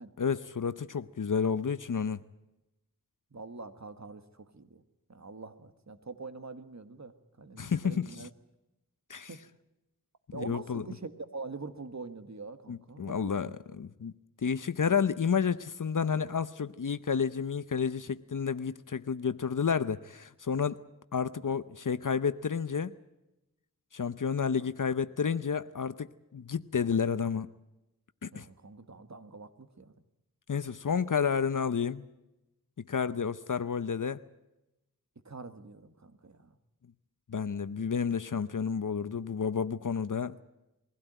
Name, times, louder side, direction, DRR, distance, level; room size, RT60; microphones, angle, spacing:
voice 1, 0.2-2.2 7.6-8.3 9.1-9.3 10.3-10.8 12.7-14.1 14.4-20.8 21.1-22.9 23.9-27.5 28.2-28.4 30.5-32.1 32.9-34.2 37.3-40.4, left 6 dB, 70° left, 14 dB, 0.7 m, -30 dB
voice 2, 3.3-4.8 5.1-8.3 9.3-9.4 10.3-13.8 24.6-24.7 28.3-29.9 35.2-36.6, right 3 dB, 55° right, 10 dB, 1.6 m, -44 dB
22.0 x 16.5 x 9.1 m, 0.95 s
wide cardioid pair, 50°, 33 cm